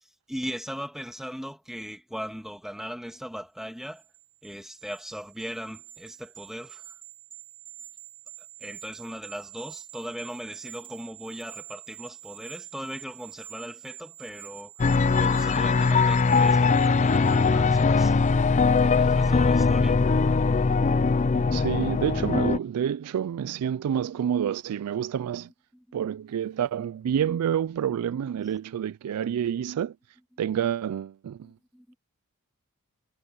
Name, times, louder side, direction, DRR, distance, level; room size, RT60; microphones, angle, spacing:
voice 1, 0.0-4.0 4.4-7.0 8.6-18.2 18.8-20.0 25.5-26.0 28.4-28.6 29.2-29.4 30.3-30.7 31.4-32.0, equal, ahead, 1.6 m, -39 dB
sound 1, 3.8-18.4 18.8-18.9, right 11 dB, 25° right, 2.0 m, -47 dB
sound 2, 14.8-22.6, left 4 dB, 30° left, 0.5 m, -21 dB
voice 2, 21.5-25.5 25.9-29.9 30.4-31.5, right 9 dB, 85° right, 0.3 m, -28 dB
head